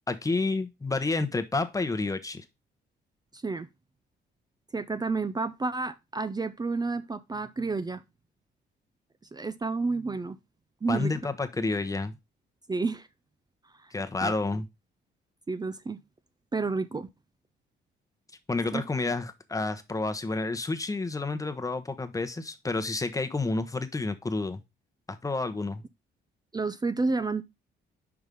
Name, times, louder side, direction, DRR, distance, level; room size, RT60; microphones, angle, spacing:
voice 1, 0.1-2.4 10.9-12.1 13.9-14.7 18.5-24.6 25.1-25.8, left 3 dB, 15° left, 1.0 m, -30 dB
voice 2, 3.3-3.7 4.7-8.0 9.3-10.4 10.8-11.1 12.7-13.1 13.8-13.9 14.2-14.3 15.5-16.0 16.5-17.1 18.7-18.8 26.5-27.4, right 3 dB, 20° right, 0.5 m, -30 dB
5.4 x 4.9 x 5.3 m
cardioid pair, 90°, 20 cm